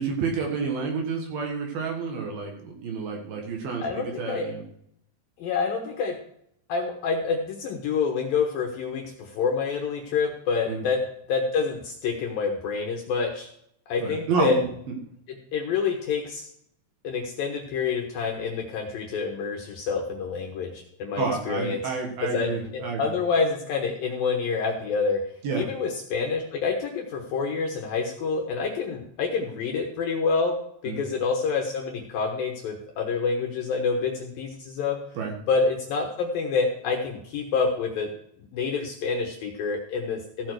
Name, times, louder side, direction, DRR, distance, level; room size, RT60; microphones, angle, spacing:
voice 1, 0.0-4.6 10.7-10.8 14.0-14.6 21.2-23.1 25.4-25.6 30.9-31.0 35.2-35.3, right 5 dB, 60° right, 1 dB, 3.0 m, -29 dB
voice 2, 3.8-4.5 5.4-6.2 6.7-11.0 11.3-13.5 13.9-14.6 15.3-16.5 17.0-21.9 22.2-25.2 25.6-30.5 30.8-35.0 35.5-38.1 38.5-40.5, left 5 dB, 70° left, 2 dB, 2.4 m, -27 dB
15.5 x 7.1 x 4.7 m, 0.70 s
omnidirectional pair, 5.4 m